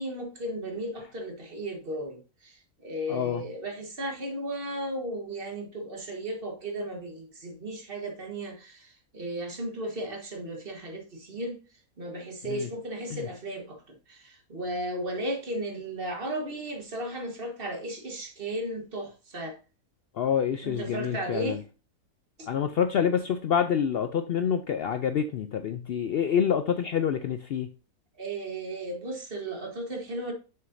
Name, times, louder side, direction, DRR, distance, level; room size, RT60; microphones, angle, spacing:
voice 1, 0.0-11.6 12.0-19.6 20.6-21.6 28.2-30.3, right 1 dB, 40° right, 1.5 m, -35 dB
voice 2, 3.1-3.4 12.5-12.7 13.1-13.3 20.1-21.6 22.5-27.7, left 8 dB, 90° left, 0.5 m, -27 dB
6.8 x 6.4 x 2.6 m
omnidirectional pair, 1.6 m